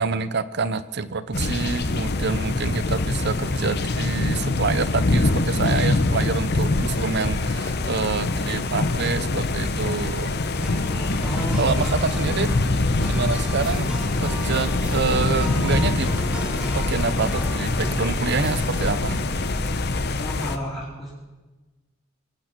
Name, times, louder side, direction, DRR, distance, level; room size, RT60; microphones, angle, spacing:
voice 1, 0.0-10.3 11.6-12.5 13.1-13.9 14.2-16.1 16.7-19.2, right 4 dB, 55° right, 15 dB, 0.7 m, -27 dB
sound 1, 1.3-20.6, left 2 dB, 50° left, 0.9 m, -24 dB
sound 2, 10.5-19.7, equal, 5° right, 1.5 m, -33 dB
voice 2, 11.2-11.7 12.1-12.2 20.2-21.1, equal, 15° left, -7 dB, 3.3 m, -31 dB
23.5 x 9.0 x 6.0 m, 1.2 s
head